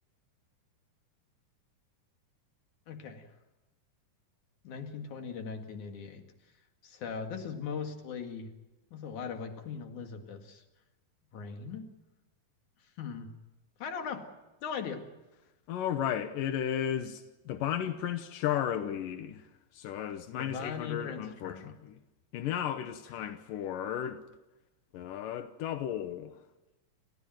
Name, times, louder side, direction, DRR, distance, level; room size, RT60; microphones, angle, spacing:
voice 1, 2.9-3.3 4.6-6.2 6.8-8.5 8.9-10.6 11.3-11.8 13.0-13.3 13.8-14.3 14.6-15.0 20.4-21.7, left 6 dB, 65° left, 3.5 m, -39 dB
voice 2, 15.7-19.4 19.7-22.0 22.3-24.2 24.9-26.4, left 10 dB, 90° left, 2.7 m, -34 dB
29.5 x 15.0 x 9.1 m
omnidirectional pair, 3.8 m